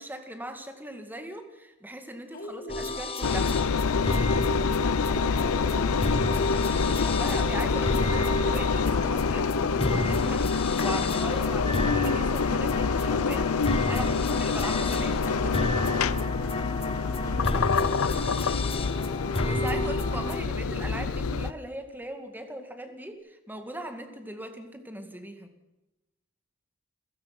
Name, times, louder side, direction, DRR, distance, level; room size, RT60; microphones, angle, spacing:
voice 1, 0.0-3.6 6.8-13.5 13.9-15.6 19.4-25.5, right 1 dB, 10° right, 7 dB, 2.2 m, -39 dB
voice 2, 2.3-2.9 4.5-6.0 17.2-18.4, left 2 dB, 45° left, 0 dB, 3.8 m, -42 dB
sound 1, 2.7-20.4, left 2 dB, 25° left, 1.4 m, -31 dB
Engine, 3.2-21.5, left 5 dB, 90° left, 0.6 m, -26 dB
sound 2, 21.2-21.5 22.6-23.1, equal, 50° right, 5.5 m, -48 dB
29.5 x 16.5 x 6.0 m, 1.0 s
head